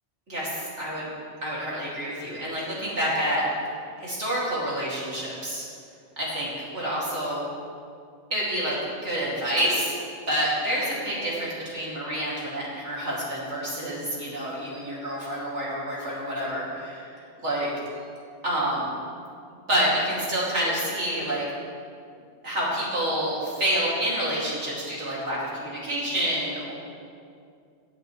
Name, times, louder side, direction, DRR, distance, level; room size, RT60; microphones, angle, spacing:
voice 1, 0.3-1.1 1.4-3.4 4.0-5.6 6.2-7.5 8.3-8.8 9.0-9.9 10.3-17.1 17.4-17.7 18.4-18.9 19.7-21.4 22.4-26.7, equal, 80° right, -7 dB, 3.2 m, -28 dB
16.5 x 8.6 x 3.3 m, 2.3 s
omnidirectional pair, 1.2 m